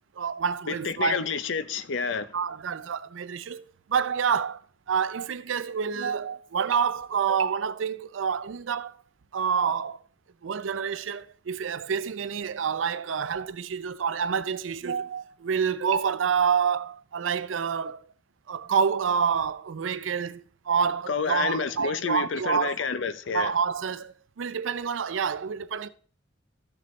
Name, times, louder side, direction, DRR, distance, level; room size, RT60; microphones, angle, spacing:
voice 1, 0.2-1.3 2.3-4.6 4.9-8.9 9.3-10.0 10.4-18.0 18.5-22.7 23.3-25.9, right 6 dB, 80° right, 0.5 m, -28 dB
voice 2, 0.7-2.4 21.1-23.5, left 5 dB, 75° left, 0.6 m, -29 dB
13.5 x 6.7 x 3.2 m
head